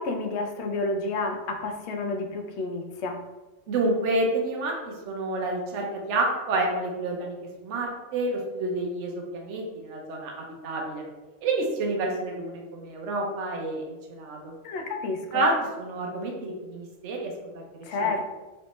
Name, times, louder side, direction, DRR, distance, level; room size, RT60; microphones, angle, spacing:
voice 1, 0.0-3.2 14.6-15.4 17.8-18.3, left 3 dB, 70° left, 4 dB, 0.8 m, -30 dB
voice 2, 3.7-7.4 7.6-11.0 11.4-14.5 15.3-17.9, right 2 dB, 70° right, 0 dB, 1.0 m, -29 dB
3.2 x 3.1 x 3.0 m, 1.1 s
omnidirectional pair, 1.3 m